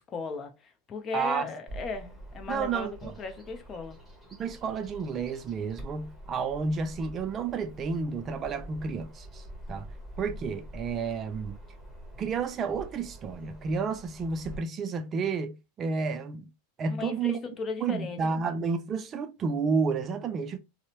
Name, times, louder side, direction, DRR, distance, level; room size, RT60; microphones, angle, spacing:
voice 1, 0.0-4.0 16.9-18.4, left 4 dB, 30° left, 0.6 m, -37 dB
voice 2, 1.1-1.5 2.5-3.1 4.4-9.4 9.7-9.9 10.2-11.6 12.2-16.5 16.8-17.4 17.8-20.6, right 5 dB, 35° right, 0.3 m, -31 dB
Bird vocalization bird call bird song, 1.7-14.6, equal, 5° right, 1.1 m, -46 dB
2.6 x 2.0 x 2.8 m
hypercardioid pair, 95°, 0 cm